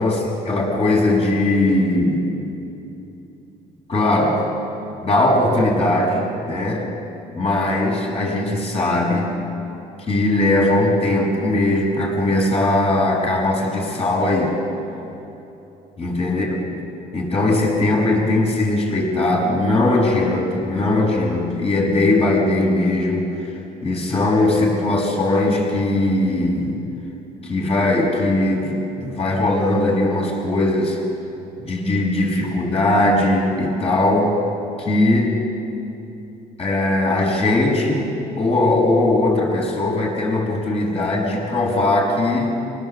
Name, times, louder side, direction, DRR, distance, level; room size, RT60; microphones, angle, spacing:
voice 1, 0.0-2.3 3.9-4.5 5.0-6.8 7.3-9.4 10.1-14.6 16.0-16.8 17.1-23.3 23.8-26.8 27.4-31.0 31.6-34.4 34.8-35.3 36.6-42.5, left 2 dB, 35° left, -2 dB, 6.5 m, -19 dB
27.5 x 18.5 x 7.9 m, 2.9 s
cardioid pair, 110°, 17 cm